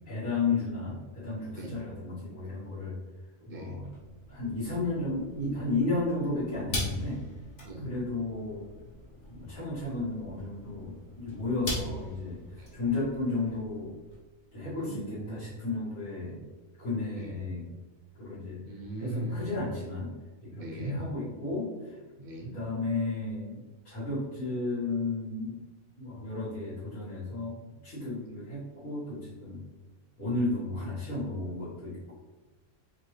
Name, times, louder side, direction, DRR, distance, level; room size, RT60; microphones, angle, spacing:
voice 1, 0.0-3.0 3.4-3.9 4.3-7.2 7.8-8.7 9.3-13.9 14.5-16.4 16.8-17.7 18.2-18.6 19.0-20.1 20.5-21.9 22.4-25.5 26.0-27.6 27.8-29.6 30.2-32.1, left 3 dB, 85° left, -13 dB, 2.0 m, -33 dB
voice 2, 3.5-3.8 7.6-7.9 12.6-12.7 14.8-15.4 17.1-17.3 18.6-19.4 20.5-21.0 22.2-22.6, right 1 dB, 50° right, 1 dB, 0.5 m, -38 dB
sound 1, 3.8-14.2, left 1 dB, 55° left, 1.5 m, -41 dB
5.0 x 2.7 x 3.2 m, 1.2 s
omnidirectional pair, 1.5 m